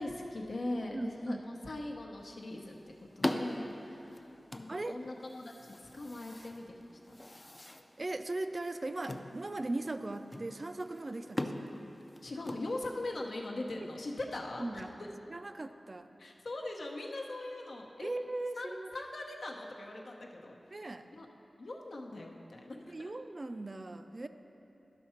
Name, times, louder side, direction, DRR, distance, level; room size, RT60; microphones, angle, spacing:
voice 1, 0.0-7.2 12.2-15.1 16.2-18.1 18.6-20.6 21.1-21.3 21.6-23.1, left 2 dB, 75° left, 0 dB, 0.8 m, -41 dB
voice 2, 0.9-1.4 4.7-5.0 8.0-11.7 14.6-14.9 15.3-16.1 18.0-18.9 20.7-21.1 22.9-24.3, right 2 dB, 40° right, 9 dB, 0.3 m, -38 dB
sound 1, 2.2-13.3, left 1 dB, 25° left, 0.4 m, -42 dB
11.5 x 5.6 x 4.3 m, 3.0 s
wide cardioid pair, 90°, 0 cm